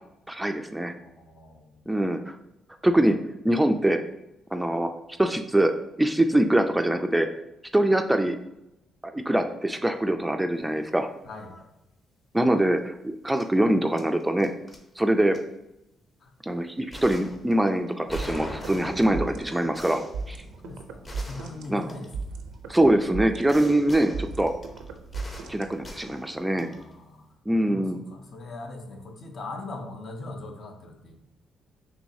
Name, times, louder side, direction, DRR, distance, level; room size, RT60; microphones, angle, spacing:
voice 1, 0.3-0.9 1.9-2.3 2.8-3.2 3.4-4.0 4.5-4.9 5.2-5.7 6.0-7.3 7.7-8.4 9.0-11.1 12.3-14.5 15.0-15.4 16.4-20.4 21.7-21.9 22.7-24.5 25.5-26.7 27.5-28.0, right 1 dB, 10° right, 6 dB, 0.3 m, -23 dB
voice 2, 1.0-1.9 11.3-11.6 16.2-16.3 20.6-22.1 26.5-27.3 27.7-31.2, left 2 dB, 60° left, 3 dB, 0.8 m, -40 dB
sound 1, 10.7-10.9 11.2-11.6 13.4-13.5 14.0-14.8 15.3-15.4 16.9-22.5 23.5-26.9, left 1 dB, 30° left, 0.8 m, -43 dB
sound 2, 18.1-26.1, right 4 dB, 85° right, 0.4 m, -37 dB
6.1 x 3.1 x 2.7 m, 0.89 s
cardioid pair, 90°, 0 cm